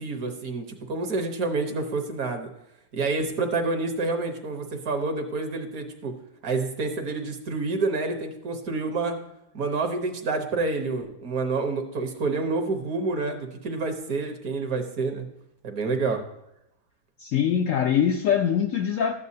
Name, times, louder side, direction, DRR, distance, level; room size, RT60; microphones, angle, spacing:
voice 1, 0.0-2.5 2.9-6.2 6.4-9.2 9.5-15.3 15.6-16.2, right 3 dB, 60° right, 5 dB, 1.4 m, -28 dB
voice 2, 17.2-19.1, left 8 dB, 70° left, 5 dB, 0.7 m, -23 dB
13.0 x 8.5 x 2.7 m, 0.86 s
omnidirectional pair, 1.8 m